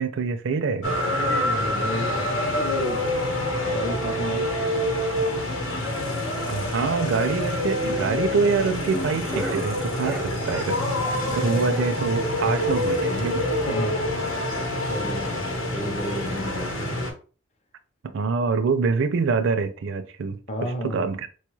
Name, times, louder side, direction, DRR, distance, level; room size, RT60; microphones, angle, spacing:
voice 1, 0.0-1.0 6.4-10.8 11.3-13.4 18.0-21.3, right 4 dB, 60° right, 0.4 m, -25 dB
sound 1, 0.8-17.1, left 1 dB, 85° left, 1.1 m, -26 dB
voice 2, 1.1-3.3 3.7-5.0 11.4-11.7 13.7-14.6 14.9-17.0 20.5-21.1, equal, 30° left, 0.6 m, -33 dB
sound 2, 7.9-11.3 11.6-13.6 13.9-14.0 14.3-14.4 14.8-14.9 15.5-15.8 16.6-16.7, right 1 dB, 5° right, 0.5 m, -38 dB
4.5 x 2.3 x 3.0 m
head